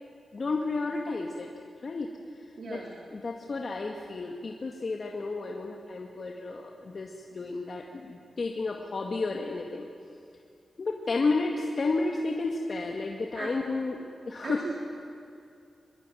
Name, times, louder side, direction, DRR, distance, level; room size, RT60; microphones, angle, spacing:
voice 1, 0.3-1.5 1.8-2.1 2.7-2.8 3.1-9.9 10.8-14.0 14.3-14.6, left 3 dB, 55° left, 1 dB, 2.2 m, -31 dB
voice 2, 2.6-2.9 13.3-13.6 14.4-14.7, right 4 dB, 70° right, 0 dB, 3.4 m, -37 dB
25.0 x 20.5 x 9.4 m, 2.5 s
cardioid pair, 65°, 0 cm